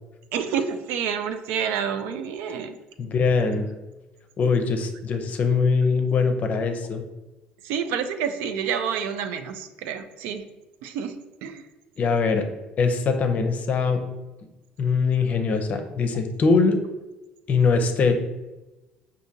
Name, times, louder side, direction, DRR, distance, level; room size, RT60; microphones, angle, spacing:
voice 1, 0.3-2.8 7.6-10.5 10.8-11.7, right 7 dB, 80° right, 8 dB, 0.4 m, -29 dB
voice 2, 3.0-3.7 4.4-7.0 12.0-12.4 12.8-14.0 14.8-16.8 17.5-18.1, left 4 dB, 45° left, 6 dB, 0.6 m, -22 dB
5.0 x 2.6 x 2.7 m, 1.1 s
supercardioid pair, 95°, 3 cm